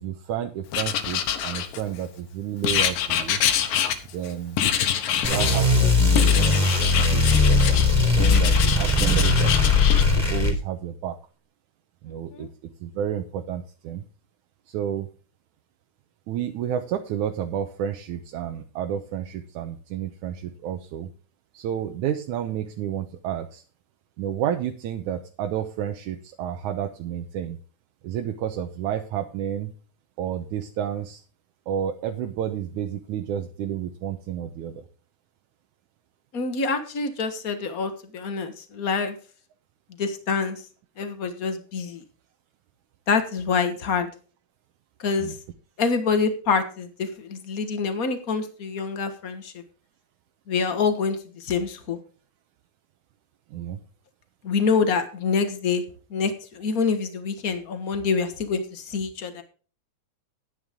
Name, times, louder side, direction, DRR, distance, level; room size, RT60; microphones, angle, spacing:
voice 1, 0.0-3.4 4.1-4.6 5.3-7.8 8.1-9.5 10.3-11.2 12.0-12.5 12.8-14.0 14.7-15.1 16.3-21.1 21.5-23.6 24.2-27.6 28.0-29.7 30.2-31.2 31.7-34.8 45.2-45.3 53.5-53.8, right 10 dB, 70° right, 5 dB, 2.1 m, -30 dB
Writing, 0.7-2.0 2.6-4.3 4.6-5.6 6.2-7.9 8.2-10.1, left 9 dB, 80° left, 2.8 m, -25 dB
sound 1, 5.2-10.5, left 3 dB, 5° left, 3.5 m, -19 dB
voice 2, 36.3-39.1 40.0-40.6 41.0-42.0 43.1-44.1 45.0-45.3 45.8-49.5 50.5-52.0 54.4-55.8 56.1-59.4, left 5 dB, 65° left, 8 dB, 0.8 m, -26 dB
12.0 x 10.0 x 3.7 m, 0.38 s
omnidirectional pair, 3.9 m